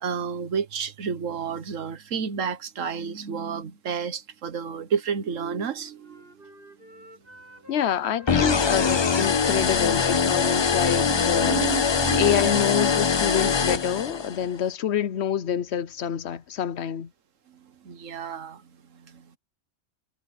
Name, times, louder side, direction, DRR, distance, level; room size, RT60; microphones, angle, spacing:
voice 1, 0.0-6.7 11.0-12.6 17.8-19.4, right 7 dB, 85° right, 1.5 m, -31 dB
Wind instrument woodwind instrument, 5.1-7.8 8.1-11.7, right 1 dB, 45° right, 8.3 m, -52 dB
voice 2, 7.7-11.6 12.2-17.1, left 9 dB, 65° left, 0.9 m, -27 dB
sound 1, 8.3-14.4, left 5 dB, 45° left, 0.3 m, -23 dB
omnidirectional pair, 1.3 m